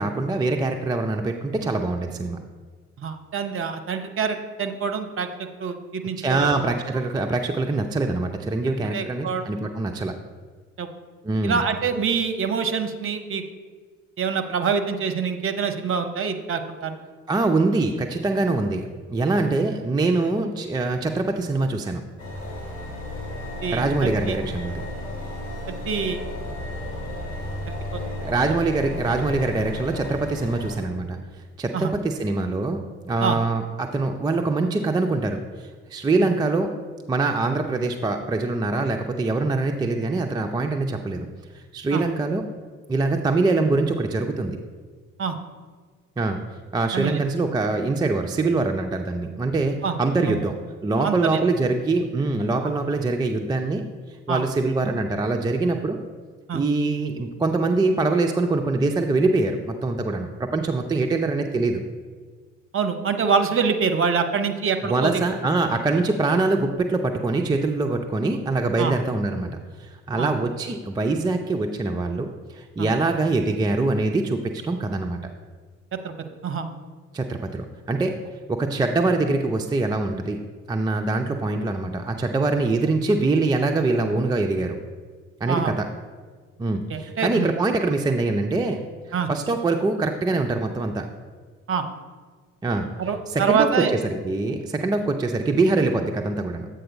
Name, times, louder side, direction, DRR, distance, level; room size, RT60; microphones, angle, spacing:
voice 1, 0.0-2.4 6.2-10.2 11.2-11.6 17.3-22.0 23.7-24.8 28.2-31.2 31.6-36.7 37.1-41.3 41.5-42.4 42.9-44.6 46.2-46.4 46.7-50.6 50.8-53.9 54.3-56.0 56.5-61.8 64.8-69.5 69.8-75.2 77.1-78.1 78.5-80.4 80.7-84.8 85.4-85.9 86.6-88.8 89.3-91.1 92.6-92.9 93.3-96.7, right 3 dB, 10° right, 4 dB, 0.4 m, -24 dB
voice 2, 3.0-5.3 5.6-6.5 8.9-9.4 10.8-10.9 11.4-13.4 14.2-16.9 23.6-24.3 25.7-26.2 27.7-28.0 31.7-31.9 33.2-33.4 36.2-36.3 41.9-42.0 45.2-45.4 46.9-47.2 49.8-49.9 50.3-50.4 51.0-51.4 52.6-52.7 54.3-54.4 56.5-56.6 62.7-65.2 68.8-68.9 70.2-70.3 72.8-72.9 76.0-76.1 76.4-76.7 85.5-85.7 86.9-87.5 89.1-89.3 91.7-91.8 93.0-93.9, right 6 dB, 35° right, 7 dB, 0.7 m, -25 dB
sound 1, 22.2-30.8, left 1 dB, 65° left, 2.3 m, -33 dB
7.8 x 3.9 x 5.2 m, 1.5 s
figure-of-eight pair, 45°, 38 cm